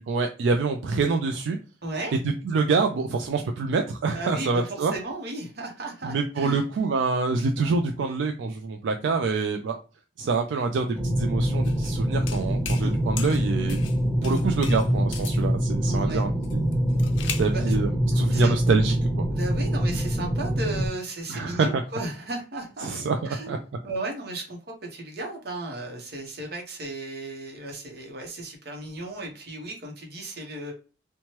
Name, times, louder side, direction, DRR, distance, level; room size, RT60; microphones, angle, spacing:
voice 1, 0.0-1.6 2.4-4.9 6.0-9.8 10.2-13.8 14.2-16.6 17.4-19.2 21.3-21.8 22.8-23.6, right 4 dB, 75° right, 5 dB, 0.3 m, -26 dB
voice 2, 1.8-2.1 4.1-6.6 12.6-12.9 14.2-14.4 15.9-16.2 17.5-17.8 18.3-18.5 19.3-22.9 23.2-23.6 23.8-30.7, right 2 dB, 55° right, 2 dB, 0.8 m, -35 dB
sound 1, 10.9-20.9, equal, ahead, 0.5 m, -25 dB
sound 2, 11.6-11.9 12.3-12.9 13.2-14.0 14.2-15.4 16.4-17.5, left 8 dB, 80° left, 0.4 m, -37 dB
3.0 x 2.2 x 2.9 m, 0.36 s
head